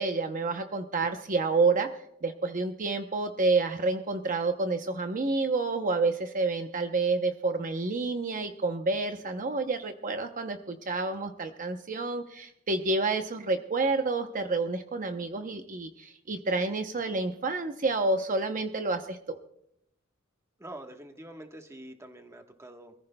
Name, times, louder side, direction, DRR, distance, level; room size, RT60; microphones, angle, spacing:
voice 1, 0.0-1.9 2.2-19.4, right 3 dB, 40° right, 6 dB, 0.7 m, -29 dB
voice 2, 20.6-22.9, right 1 dB, 15° right, 4 dB, 1.2 m, -45 dB
26.0 x 15.0 x 2.2 m, 0.77 s
head